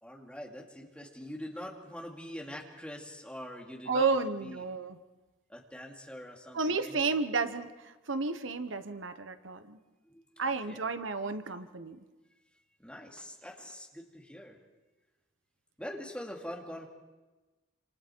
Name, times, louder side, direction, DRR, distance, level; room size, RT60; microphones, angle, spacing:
voice 1, 0.0-4.6 5.5-7.1 10.0-10.9 12.8-14.6 15.8-16.9, equal, 5° left, -1 dB, 2.6 m, -44 dB
voice 2, 3.9-5.0 6.5-9.8 10.4-12.0, right 4 dB, 80° right, 10 dB, 1.1 m, -32 dB
27.5 x 27.5 x 4.6 m, 1.2 s
head